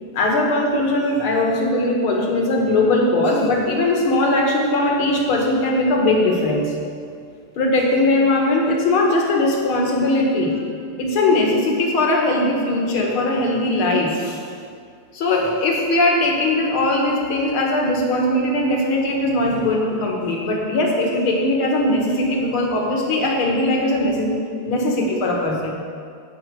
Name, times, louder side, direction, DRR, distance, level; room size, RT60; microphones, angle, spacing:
voice 1, 0.1-6.7 7.6-10.6 11.0-14.4 15.1-24.3 24.6-25.7, left 2 dB, 75° left, 0 dB, 2.3 m, -20 dB
16.5 x 5.7 x 4.7 m, 2.3 s
omnidirectional pair, 2.3 m